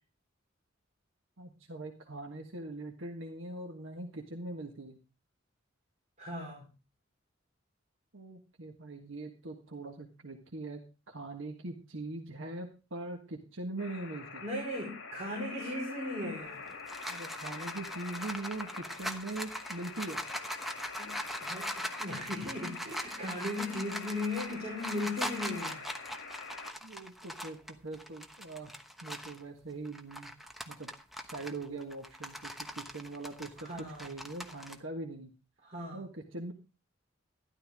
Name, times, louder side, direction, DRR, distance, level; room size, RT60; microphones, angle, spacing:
voice 1, 1.4-5.0 8.1-10.8 11.1-14.4 17.1-20.2 26.8-28.7 29.0-30.3 30.7-30.9 31.2-35.3 35.9-36.5, right 2 dB, 75° right, 3 dB, 1.5 m, -42 dB
voice 2, 6.2-6.7 14.4-16.6 21.0-25.8 33.6-34.1 35.6-36.0, left 1 dB, 35° right, -3 dB, 4.8 m, -37 dB
sound 1, 13.8-26.7, left 5 dB, 75° left, 2.8 m, -46 dB
sound 2, 16.5-29.4 29.9-34.8, equal, ahead, 1.1 m, -41 dB
12.5 x 12.0 x 3.6 m, 0.31 s
head